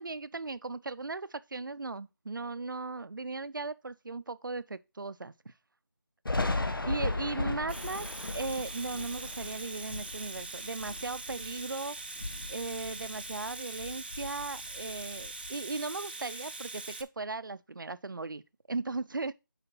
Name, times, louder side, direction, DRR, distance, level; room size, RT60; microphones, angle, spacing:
voice 1, 0.0-5.3 6.9-12.0 12.5-18.4 18.7-19.3, right 3 dB, 70° right, 0.6 m, -37 dB
Thunder, 6.3-11.7 12.1-13.5 13.8-15.5, left 2 dB, 90° left, 1.0 m, -36 dB
Domestic sounds home sounds, 7.7-17.0, right 3 dB, 30° right, 0.5 m, -42 dB
6.9 x 5.0 x 5.3 m
figure-of-eight pair, 175°, 11 cm